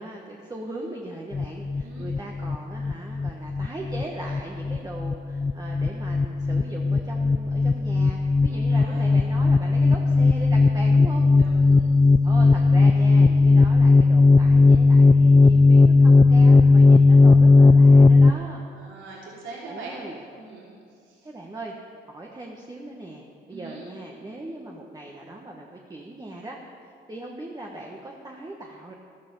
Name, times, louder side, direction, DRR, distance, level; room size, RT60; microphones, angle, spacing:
voice 1, 0.0-11.3 12.2-18.6 19.7-20.2 21.2-21.7 22.1-28.9, right 1 dB, 20° right, -1 dB, 1.5 m, -39 dB
sound 1, 1.3-18.3, left 3 dB, 20° left, 0.4 m, -16 dB
voice 2, 8.5-9.1 11.4-11.9 12.2-12.7 18.7-20.0 20.4-20.6 21.1-21.2 23.5-23.9, right 3 dB, 75° right, -5 dB, 3.2 m, -42 dB
13.5 x 13.0 x 5.6 m, 2.3 s
cardioid pair, 90°, 20 cm